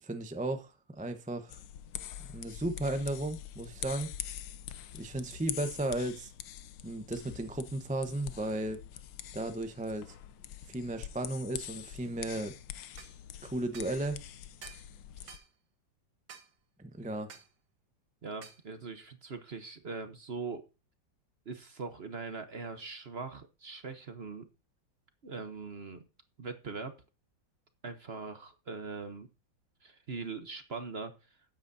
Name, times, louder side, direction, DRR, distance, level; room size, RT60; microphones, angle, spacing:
voice 1, 0.0-1.6 2.3-4.1 4.9-6.3 6.8-8.8 9.3-10.0 10.7-12.5 13.4-14.2 16.8-17.3, right 1 dB, 10° right, 0.5 m, -35 dB
sound 1, 1.5-15.4, left 11 dB, 90° left, 1.5 m, -44 dB
sound 2, 13.0-13.1 13.7-14.0 14.6-14.9 15.3-15.5 16.3-16.5 17.3-17.5 18.4-18.6, right 7 dB, 65° right, 1.9 m, -50 dB
voice 2, 18.2-20.7 21.4-24.5 25.2-26.0 26.4-27.0 27.8-29.3 29.8-31.4, right 4 dB, 40° right, 1.0 m, -41 dB
13.0 x 9.4 x 2.7 m
omnidirectional pair, 2.0 m